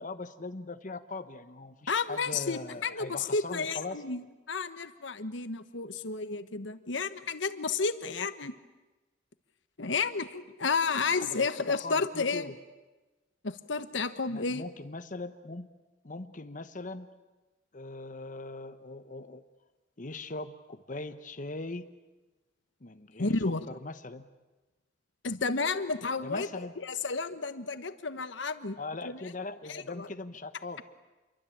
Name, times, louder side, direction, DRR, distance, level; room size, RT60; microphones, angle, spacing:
voice 1, 0.0-4.0 11.0-11.4 11.7-12.5 14.3-15.7 16.0-17.1 17.7-19.4 20.0-21.9 22.8-24.3 26.2-26.7 28.8-30.8, left 3 dB, 45° left, 8 dB, 1.1 m, -40 dB
voice 2, 1.9-8.5 9.8-12.5 13.4-14.6 23.2-23.6 25.2-26.5 26.8-29.2 29.7-30.1, left 4 dB, 80° left, 11 dB, 1.3 m, -31 dB
28.0 x 23.5 x 8.7 m, 1.1 s
head